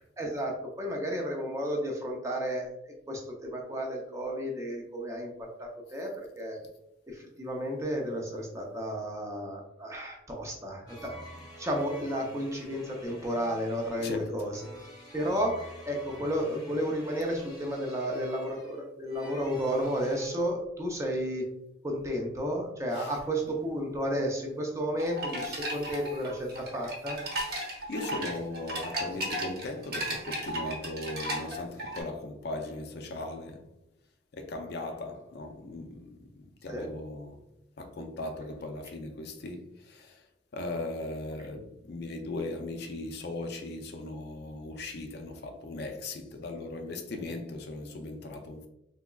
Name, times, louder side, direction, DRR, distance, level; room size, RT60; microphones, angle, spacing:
voice 1, 0.2-5.3 5.6-6.6 7.1-11.1 11.6-14.7 15.1-21.4 21.8-27.2 36.7-36.9, equal, 15° right, 0.5 m, -32 dB
sound 1, 10.9-20.3, left 1 dB, 20° left, 0.8 m, -48 dB
voice 2, 14.0-14.6 22.9-23.3 25.4-26.1 27.4-33.7 34.3-37.4 37.8-40.3 40.5-48.7, left 2 dB, 50° left, 0.4 m, -38 dB
sound 2, 25.0-32.0, right 1 dB, 50° right, 0.9 m, -35 dB
3.5 x 2.9 x 2.2 m
head